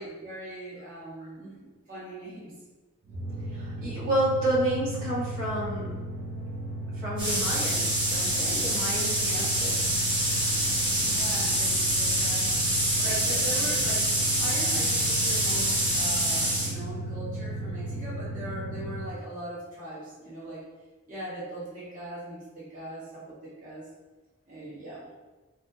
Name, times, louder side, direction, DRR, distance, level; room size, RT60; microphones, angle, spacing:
voice 1, 0.0-2.5 10.9-12.5 13.0-14.1 14.4-20.6 21.1-23.9 24.5-25.1, right 1 dB, 40° right, -9 dB, 1.3 m, -40 dB
sound 1, 3.1-19.2, right 1 dB, 60° right, 0.7 m, -35 dB
voice 2, 3.5-6.0 7.0-9.9, right 1 dB, 85° right, -8 dB, 1.4 m, -30 dB
sound 2, 7.2-16.7, right 1 dB, 25° right, 1.1 m, -26 dB
3.4 x 3.3 x 2.8 m, 1.3 s
head